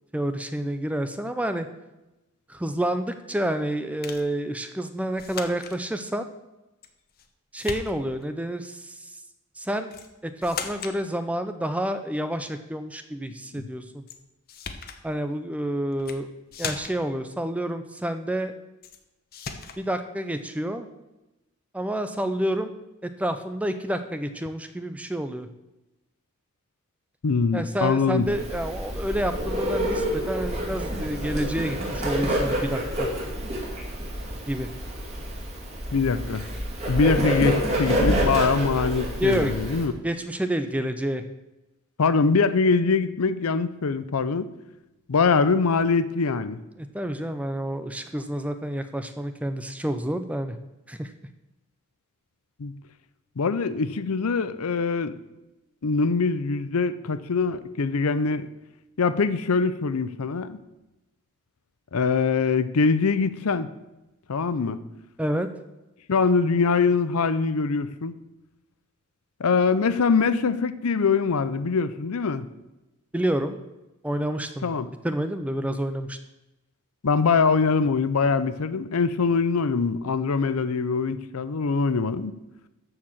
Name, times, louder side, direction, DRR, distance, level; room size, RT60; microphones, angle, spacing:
voice 1, 0.1-1.7 2.5-6.3 7.5-9.2 9.6-9.9 10.2-14.0 15.0-16.3 16.6-18.5 19.8-20.9 21.7-22.7 23.0-25.5 27.5-33.1 34.5-34.7 39.2-39.7 40.0-41.2 46.8-50.6 50.9-51.1 65.2-65.5 73.1-73.6 74.0-74.7 75.0-76.2, right 1 dB, 5° right, 9 dB, 0.5 m, -29 dB
sound 1, 4.0-4.3 5.2-5.8 6.8-7.3 7.6-8.3 9.9-10.1 10.4-11.0 14.1-14.2 14.5-15.0 15.9-16.2 16.5-17.1 18.8-19.0 19.3-19.8, left 5 dB, 45° left, 0.9 m, -36 dB
voice 2, 27.2-28.3 35.9-36.4 36.9-39.9 42.0-44.5 45.1-46.6 52.6-52.8 53.4-55.1 55.8-58.5 59.0-60.6 61.9-63.7 64.3-64.8 66.1-68.2 69.4-72.5 74.6-74.9 77.0-82.3, left 4 dB, 75° left, 13 dB, 0.6 m, -23 dB
Bird, 28.2-39.8, equal, 30° right, 2.7 m, -28 dB
13.5 x 4.8 x 7.3 m, 0.98 s
head